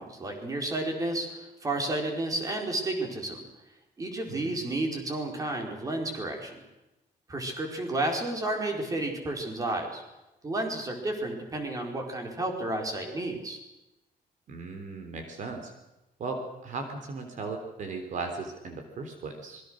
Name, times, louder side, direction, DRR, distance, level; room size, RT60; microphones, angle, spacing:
voice 1, 0.0-3.4 4.0-6.6 7.3-10.0 10.4-13.6, right 2 dB, 20° right, 2 dB, 4.8 m, -31 dB
voice 2, 4.3-4.6 14.5-15.7 16.2-19.6, right 3 dB, 55° right, 5 dB, 3.6 m, -37 dB
26.0 x 22.5 x 6.5 m, 0.98 s
cardioid pair, 165°, 16 cm